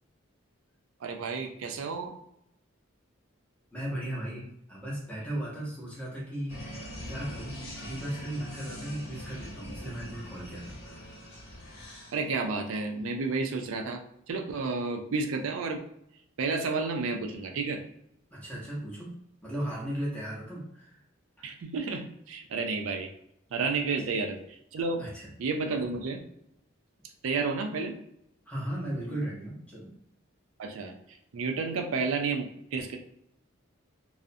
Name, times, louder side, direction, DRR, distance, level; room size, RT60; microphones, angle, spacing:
voice 1, 1.0-2.1 12.1-14.0 14.3-15.8 16.4-17.8 21.4-23.1 23.5-25.0 25.4-26.2 27.2-28.0 30.6-30.9 31.3-33.0, right 4 dB, 75° right, 4 dB, 0.4 m, -31 dB
voice 2, 3.7-11.1 18.3-19.2 19.4-20.9 21.4-21.5 25.0-25.3 28.5-29.9, right 1 dB, 5° left, -6 dB, 0.7 m, -36 dB
sound 1, 6.5-12.2, equal, 75° left, 0.9 m, -43 dB
2.4 x 2.0 x 2.6 m, 0.75 s
head